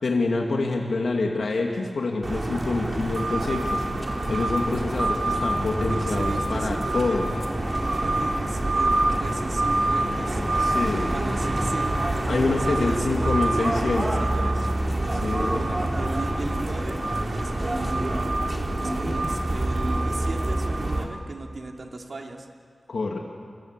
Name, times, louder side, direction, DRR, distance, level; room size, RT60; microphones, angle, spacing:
voice 1, 0.0-3.8 4.3-7.3 10.6-11.1 12.3-14.2 15.1-15.6 22.9-23.2, left 3 dB, 85° left, 0 dB, 2.6 m, -26 dB
sound 1, 2.2-21.0, right 1 dB, 35° right, 3.5 m, -26 dB
voice 2, 5.9-7.4 8.0-10.4 11.1-11.9 12.6-14.7 15.2-17.0 17.3-18.2 18.8-22.5, right 2 dB, 65° right, 2 dB, 3.0 m, -36 dB
29.0 x 24.0 x 8.3 m, 2.1 s
wide cardioid pair, 90°, 0 cm